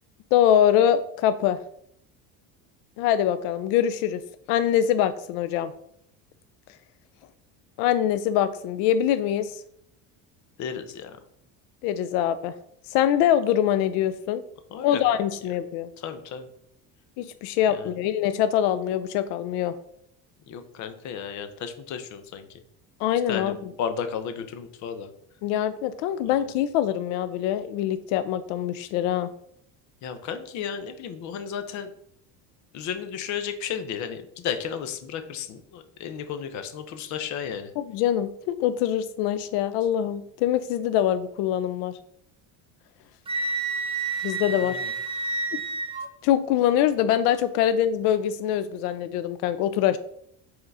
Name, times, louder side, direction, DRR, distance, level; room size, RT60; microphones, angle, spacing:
voice 1, 0.3-1.6 3.0-4.2 4.5-5.7 7.8-9.6 11.8-12.5 12.9-14.4 14.8-15.9 17.2-19.7 23.0-23.7 25.4-29.3 37.8-41.9 44.2-44.8 45.5-45.6 46.2-50.0, left 10 dB, 85° left, 12 dB, 0.6 m, -24 dB
voice 2, 10.6-11.2 14.7-15.0 16.0-16.5 17.7-17.9 20.5-22.5 23.3-25.1 26.2-26.4 30.0-31.9 32.7-37.7 44.5-44.9 47.6-47.7, left 7 dB, 50° left, 9 dB, 0.8 m, -33 dB
Wind instrument woodwind instrument, 43.3-46.1, right 3 dB, 15° right, 0.5 m, -29 dB
5.7 x 3.8 x 5.4 m, 0.68 s
cardioid pair, 170°, 38 cm